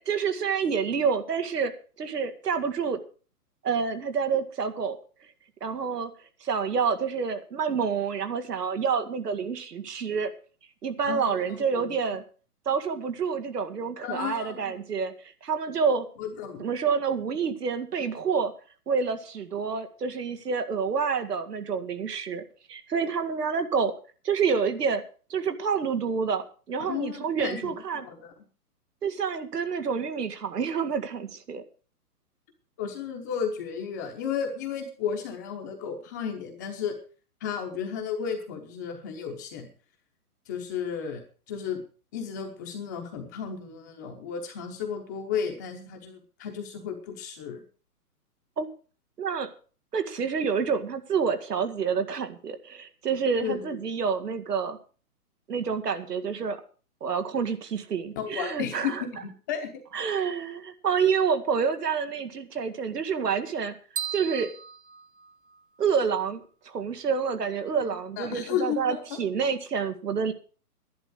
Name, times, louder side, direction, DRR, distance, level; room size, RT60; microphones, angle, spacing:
voice 1, 0.0-1.7 2.0-3.0 3.6-5.0 5.6-6.1 6.4-10.3 10.8-12.2 12.7-15.1 15.4-16.1 16.6-18.5 18.9-22.4 22.7-23.9 24.2-25.0 25.3-28.1 29.0-31.6 48.6-48.7 49.2-49.5 49.9-54.8 55.5-56.6 57.0-59.0 59.9-63.8 64.1-64.5 65.8-70.3, right 6 dB, 85° right, 9 dB, 2.1 m, -28 dB
voice 2, 11.0-12.0 14.0-14.8 16.2-16.7 26.9-28.3 32.8-37.0 37.4-39.7 40.5-41.8 42.1-47.6 53.4-53.8 58.2-59.1 59.5-59.7 60.2-60.3 68.2-69.2, left 7 dB, 10° left, 4 dB, 0.8 m, -33 dB
sound 1, 64.0-65.9, right 8 dB, 35° right, 0.8 m, -37 dB
11.0 x 11.0 x 6.3 m, 0.39 s
hypercardioid pair, 170°, 46 cm